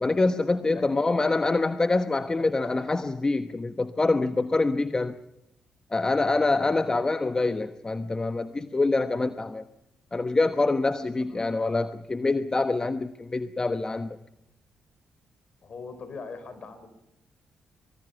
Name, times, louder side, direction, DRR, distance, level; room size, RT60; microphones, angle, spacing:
voice 1, 0.0-5.2 5.9-9.6 10.1-14.2, left 3 dB, 25° left, 10 dB, 1.2 m, -25 dB
voice 2, 2.1-2.7 6.5-7.0 11.3-11.6 15.6-16.9, left 4 dB, 50° left, 10 dB, 5.2 m, -42 dB
25.0 x 24.0 x 5.8 m, 0.88 s
hypercardioid pair, 40°, 3 cm